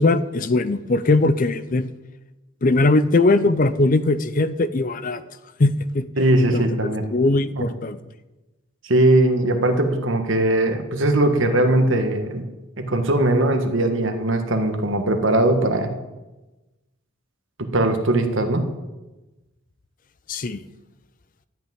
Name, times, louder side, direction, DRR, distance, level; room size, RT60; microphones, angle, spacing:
voice 1, 0.0-1.9 2.6-5.2 5.6-6.1 6.5-6.7 7.1-8.0 20.3-20.6, left 2 dB, 40° left, 14 dB, 0.5 m, -20 dB
voice 2, 6.2-7.0 7.6-7.7 8.8-12.4 12.8-15.9 17.6-18.7, right 1 dB, 60° right, 6 dB, 1.5 m, -20 dB
13.0 x 6.0 x 9.4 m, 1.1 s
head